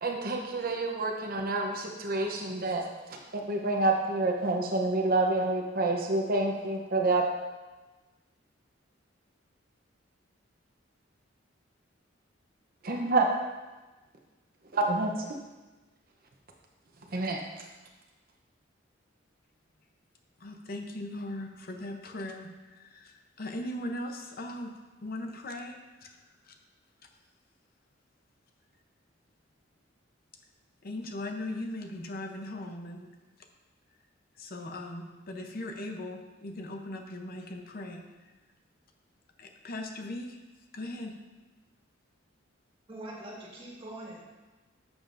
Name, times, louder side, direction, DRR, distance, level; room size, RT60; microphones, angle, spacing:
voice 1, 0.0-2.8 3.1-7.3 12.8-13.3 14.7-15.3 17.1-17.4, right 2 dB, 50° right, 1 dB, 0.8 m, -28 dB
voice 2, 20.4-24.7 25.0-26.2 26.4-26.5 30.8-33.1 34.4-38.0 39.4-40.4 40.7-41.2, left 1 dB, 50° left, 4 dB, 0.7 m, -39 dB
voice 3, 42.9-44.2, right 1 dB, 30° right, -3 dB, 1.8 m, -43 dB
11.0 x 7.2 x 2.6 m, 1.2 s
head